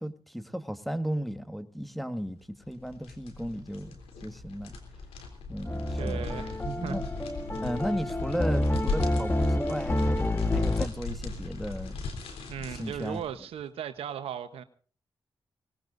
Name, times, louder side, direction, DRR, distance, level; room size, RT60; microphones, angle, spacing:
voice 1, 0.0-4.8 5.5-6.3 6.8-7.0 7.6-12.0 12.6-13.2, equal, ahead, 1.8 m, -35 dB
sound 1, 2.6-13.3, left 3 dB, 85° left, 3.3 m, -37 dB
sound 2, 5.6-10.9, left 1 dB, 20° left, 1.4 m, -29 dB
voice 2, 6.0-7.0 12.5-14.6, right 9 dB, 85° right, 1.0 m, -37 dB
24.0 x 19.0 x 2.6 m
supercardioid pair, 40°, 10 cm